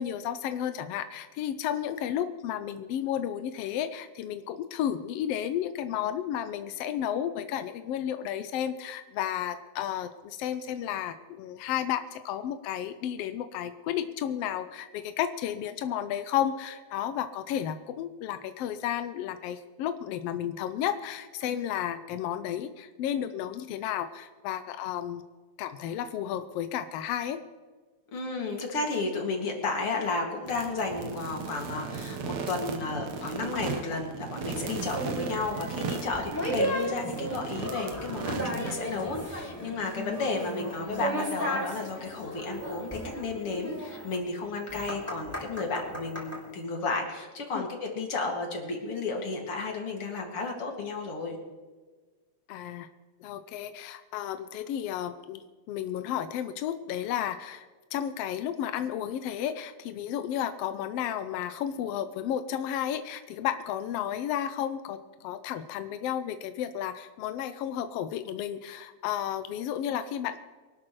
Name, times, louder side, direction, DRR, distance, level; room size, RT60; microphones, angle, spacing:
voice 1, 0.0-25.2 25.6-27.4 47.5-47.7 52.5-52.9 53.2-70.4, left 10 dB, 80° left, 10 dB, 1.4 m, -32 dB
voice 2, 28.1-51.4, left 3 dB, 50° left, 1 dB, 3.0 m, -33 dB
sound 1, 30.5-38.7, right 5 dB, 65° right, 2.4 m, -37 dB
sound 2, 34.7-46.4, right 1 dB, 5° left, 3.3 m, -35 dB
24.0 x 12.5 x 3.2 m, 1.4 s
omnidirectional pair, 3.4 m